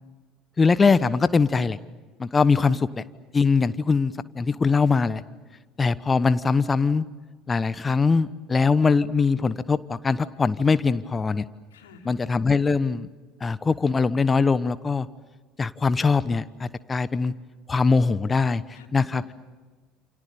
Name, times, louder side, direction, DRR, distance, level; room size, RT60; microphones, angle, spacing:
voice 1, 0.6-1.8 2.2-2.8 3.3-5.2 5.8-7.0 7.5-11.4 12.1-13.1 13.4-15.1 15.6-17.3 17.7-18.6 18.9-19.2, left 4 dB, 25° left, 16 dB, 1.0 m, -22 dB
voice 2, 11.7-12.1 18.7-19.3, left 5 dB, 75° left, 3 dB, 3.2 m, -50 dB
29.0 x 28.5 x 7.0 m, 1.3 s
figure-of-eight pair, 65°, 0 cm